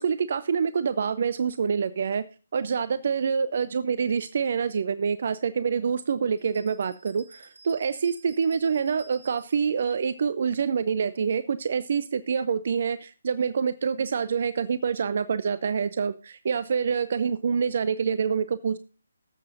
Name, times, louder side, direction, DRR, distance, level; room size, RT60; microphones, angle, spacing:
voice 1, 0.0-18.8, right 6 dB, 50° right, 15 dB, 0.5 m, -26 dB
sound 1, 6.4-9.7, right 2 dB, 90° right, 2.0 m, -52 dB
19.0 x 7.5 x 2.6 m, 0.35 s
figure-of-eight pair, 145°, 0 cm